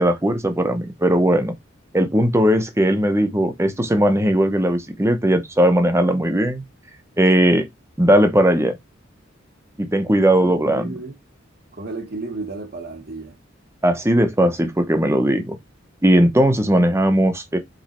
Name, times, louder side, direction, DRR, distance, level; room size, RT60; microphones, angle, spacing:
voice 1, 0.0-1.5 1.9-6.6 7.2-7.7 8.0-8.8 9.8-10.9 13.8-15.6 16.0-17.6, right 1 dB, 15° right, 1.0 m, -18 dB
voice 2, 10.4-11.1 11.7-13.4, right 3 dB, 50° right, 1.2 m, -33 dB
5.2 x 4.3 x 4.3 m
head